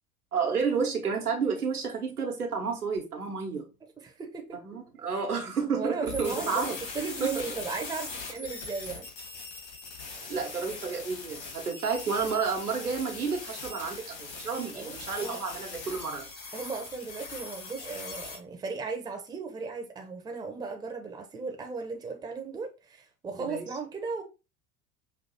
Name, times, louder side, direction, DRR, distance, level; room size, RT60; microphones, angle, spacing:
voice 1, 0.3-3.7 4.6-6.8 7.2-7.4 10.3-16.3 23.4-23.7, right 5 dB, 85° right, 1.1 m, -31 dB
voice 2, 4.0-4.6 5.1-5.2 5.7-6.6 6.9-9.1 14.7-15.4 16.5-24.2, right 4 dB, 10° right, 0.6 m, -36 dB
sound 1, 6.0-18.4, left 4 dB, 70° left, 2.1 m, -41 dB
5.7 x 2.6 x 2.8 m
figure-of-eight pair, 75°, 44 cm